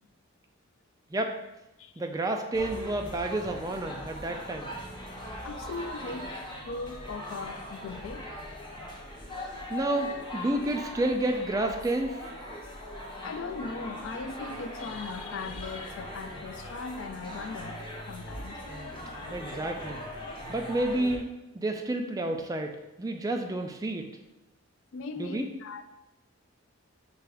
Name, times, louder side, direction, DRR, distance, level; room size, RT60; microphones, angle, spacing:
voice 1, 2.0-4.7 9.7-12.2 18.7-18.9 19.3-20.0 20.5-21.3 21.5-24.1 25.2-25.5, right 1 dB, 15° right, 0.3 m, -30 dB
sound 1, 2.5-21.2, left 1 dB, 25° left, 0.8 m, -41 dB
voice 2, 5.1-8.2 13.2-18.6 19.1-19.3 24.9-25.8, left 4 dB, 65° left, 0.3 m, -39 dB
6.5 x 2.3 x 3.3 m
head